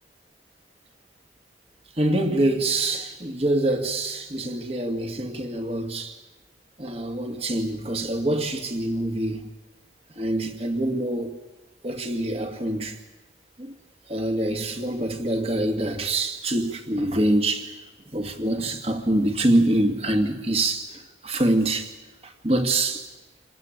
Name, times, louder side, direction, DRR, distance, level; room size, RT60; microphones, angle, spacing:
voice 1, 2.0-6.1 6.8-9.5 10.2-11.4 11.8-13.0 13.6-13.7 14.1-17.7 18.1-20.9 21.2-21.9 22.4-23.0, right 1 dB, 30° right, 2.1 m, -25 dB
28.0 x 20.5 x 9.2 m
head